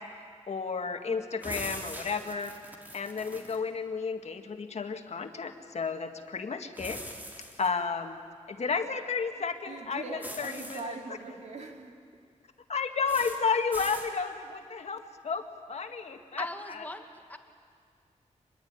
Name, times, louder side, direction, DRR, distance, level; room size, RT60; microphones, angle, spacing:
voice 1, 0.5-2.5 2.9-7.0 7.6-8.2 8.5-10.9 12.7-16.8, left 5 dB, 60° left, 5 dB, 1.9 m, -32 dB
sound 1, 1.4-3.6 6.8-7.7 10.2-10.8 13.1-13.4 13.7-14.1, equal, 15° right, 3.6 m, -42 dB
voice 2, 9.7-12.0, right 3 dB, 65° right, 2 dB, 3.3 m, -41 dB
voice 3, 16.4-17.4, left 1 dB, 15° left, 5 dB, 2.0 m, -39 dB
25.5 x 21.5 x 9.7 m, 2.2 s
wide cardioid pair, 100°, 12 cm